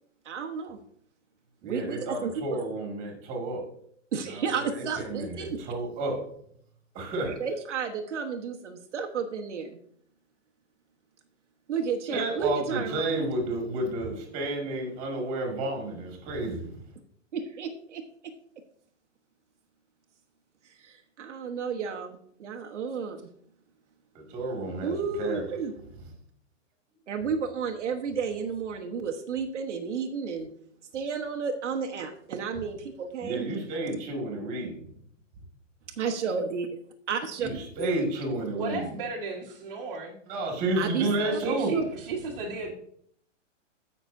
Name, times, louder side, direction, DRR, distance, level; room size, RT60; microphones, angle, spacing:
voice 1, 0.2-0.8 1.6-2.3 4.1-5.6 7.2-9.8 11.7-13.1 17.3-18.0 20.6-23.3 24.8-25.7 27.1-30.5 30.9-33.5 36.0-36.7 37.1-37.5 37.8-38.0 40.7-41.4 41.7-41.8, right 6 dB, 65° right, 3 dB, 1.2 m, -32 dB
voice 2, 1.6-3.6 4.2-6.2 6.9-7.4 12.1-16.8 24.1-25.4 33.2-34.8 37.4-39.0 40.3-41.7, right 2 dB, 20° right, 1 dB, 2.1 m, -31 dB
voice 3, 38.5-40.2 41.0-42.7, right 4 dB, 35° right, -4 dB, 1.5 m, -34 dB
16.0 x 6.0 x 2.6 m, 0.66 s
hypercardioid pair, 170°, 38 cm